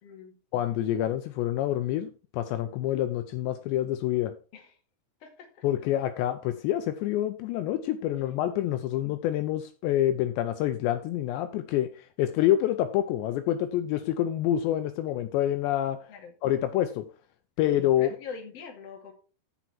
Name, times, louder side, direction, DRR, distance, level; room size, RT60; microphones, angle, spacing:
voice 1, 0.0-0.4 4.5-4.8 5.2-5.6 8.9-9.1 16.1-16.3 17.6-19.1, left 5 dB, 45° left, 2 dB, 2.2 m, -44 dB
voice 2, 0.5-4.4 5.6-11.9 12.2-16.1 16.4-17.1 17.6-18.1, left 12 dB, 80° left, 9 dB, 2.7 m, -27 dB
14.0 x 4.9 x 4.5 m, 0.36 s
omnidirectional pair, 5.5 m